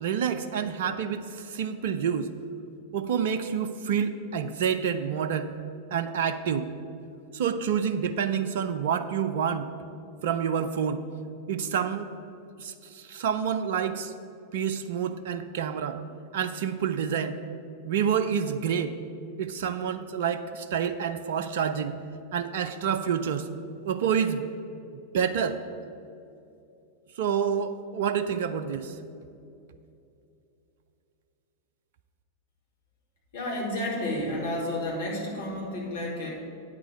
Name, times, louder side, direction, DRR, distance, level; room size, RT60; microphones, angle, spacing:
voice 1, 0.0-2.3 2.9-5.5 5.9-6.7 7.3-9.7 10.2-11.0 11.5-12.1 12.6-14.1 14.5-16.0 16.3-17.4 17.8-18.9 19.4-22.0 22.3-23.5 23.8-24.4 24.9-25.6 27.2-29.0, right 7 dB, 55° right, 10 dB, 0.4 m, -28 dB
voice 2, 33.3-36.3, left 1 dB, 60° left, -3 dB, 2.4 m, -31 dB
8.9 x 4.8 x 7.7 m, 2.7 s
figure-of-eight pair, 90°, 0 cm